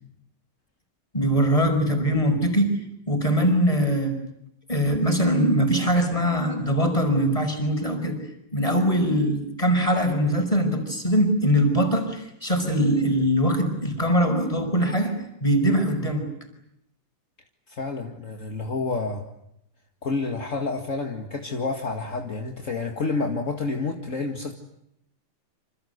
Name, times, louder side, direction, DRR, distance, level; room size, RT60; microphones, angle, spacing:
voice 1, 1.1-2.7 3.1-4.2 4.7-8.2 8.5-15.1 15.4-16.2, equal, 10° left, 6 dB, 5.3 m, -22 dB
voice 2, 17.7-19.3 20.0-24.5, left 3 dB, 30° left, 3 dB, 1.7 m, -29 dB
27.5 x 27.0 x 8.1 m, 0.78 s
omnidirectional pair, 3.9 m